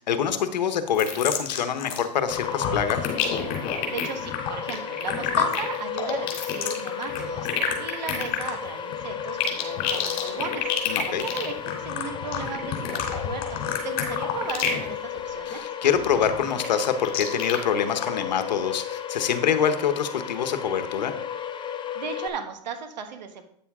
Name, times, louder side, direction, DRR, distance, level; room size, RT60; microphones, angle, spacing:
voice 1, 0.1-3.0 10.9-11.3 15.5-21.1, left 8 dB, 90° left, 9 dB, 1.0 m, -25 dB
sound 1, 0.9-2.0 2.3-14.9 15.2-15.5 15.9-17.6 18.0-18.1, left 8 dB, 50° left, 3.0 m, -28 dB
sound 2, 2.3-22.3, left 9 dB, 20° left, 0.8 m, -34 dB
voice 2, 3.9-7.5 7.8-10.7 11.1-15.6 21.9-23.4, right 6 dB, 85° right, 6 dB, 1.5 m, -36 dB
9.2 x 7.1 x 3.6 m, 0.66 s
hypercardioid pair, 120°, 21 cm